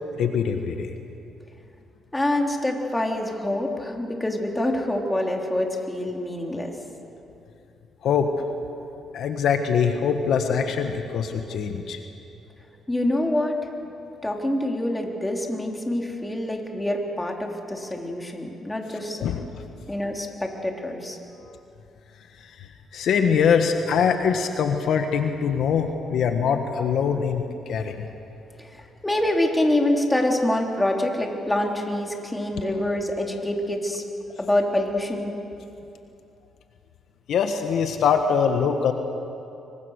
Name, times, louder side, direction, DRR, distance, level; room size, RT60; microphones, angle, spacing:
voice 1, 0.1-1.0 8.0-8.3 9.1-12.0 19.2-19.4 22.4-22.7 22.9-28.1 37.3-38.9, left 6 dB, 70° left, 6 dB, 1.5 m, -23 dB
voice 2, 2.1-6.8 12.9-13.7 14.2-19.3 19.9-21.2 28.6-34.0 34.4-35.4, left 1 dB, 10° left, 1 dB, 3.4 m, -26 dB
25.5 x 24.0 x 6.6 m, 2.8 s
cardioid pair, 90°, 0 cm